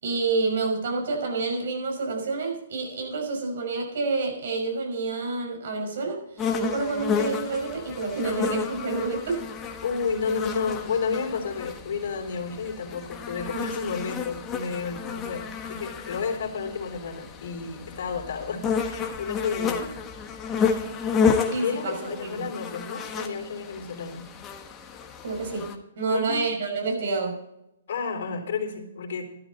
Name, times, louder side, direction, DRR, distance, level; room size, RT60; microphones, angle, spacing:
voice 1, 0.0-9.4 19.7-19.8 21.5-22.5 25.2-27.4, right 3 dB, 65° right, 2 dB, 5.9 m, -28 dB
sound 1, 6.4-25.8, left 6 dB, 20° left, 1.4 m, -31 dB
voice 2, 9.8-19.8 21.6-24.3 26.1-26.4 27.9-29.3, left 5 dB, 65° left, 1 dB, 3.4 m, -31 dB
12.5 x 12.5 x 4.2 m, 0.83 s
hypercardioid pair, 140°, 0 cm